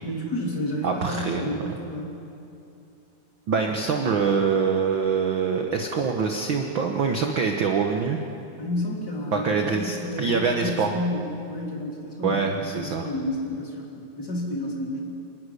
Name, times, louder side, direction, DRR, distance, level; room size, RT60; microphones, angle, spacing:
voice 1, 0.0-2.1 8.6-15.0, left 1 dB, 30° left, -2 dB, 3.7 m, -31 dB
voice 2, 0.8-1.5 3.5-8.2 9.3-11.0 12.2-13.1, right 5 dB, 65° right, 3 dB, 1.2 m, -24 dB
28.0 x 12.0 x 10.0 m, 2.8 s
omnidirectional pair, 3.9 m